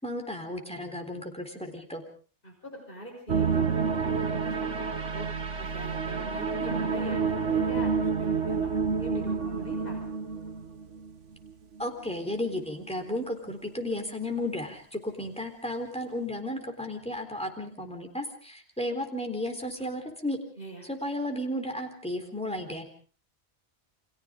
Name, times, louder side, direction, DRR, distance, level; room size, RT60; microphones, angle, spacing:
voice 1, 0.0-2.0 11.8-20.4 20.8-22.8, left 1 dB, 5° left, 3 dB, 3.8 m, -34 dB
voice 2, 2.4-5.3 5.6-10.0 20.6-20.8, right 1 dB, 50° left, 1 dB, 5.9 m, -41 dB
sound 1, 3.3-11.5 11.8-12.1 12.6-12.7, right 5 dB, 85° right, 1.6 m, -29 dB
29.5 x 25.5 x 3.8 m, 0.42 s
omnidirectional pair, 1.2 m